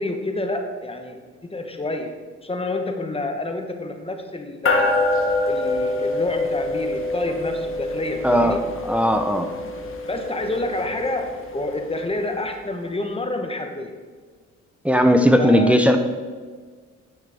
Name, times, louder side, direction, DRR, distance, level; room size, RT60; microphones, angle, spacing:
voice 1, 0.0-5.0 5.5-8.7 10.1-14.0 15.4-15.8, left 2 dB, 20° left, 5 dB, 1.1 m, -28 dB
sound 1, 4.7-12.3, left 2 dB, 45° left, 1.3 m, -26 dB
voice 2, 8.2-8.6 8.8-9.5 14.8-16.0, equal, 5° right, 6 dB, 0.7 m, -17 dB
9.9 x 6.5 x 3.5 m, 1.5 s
cardioid pair, 90°, 30 cm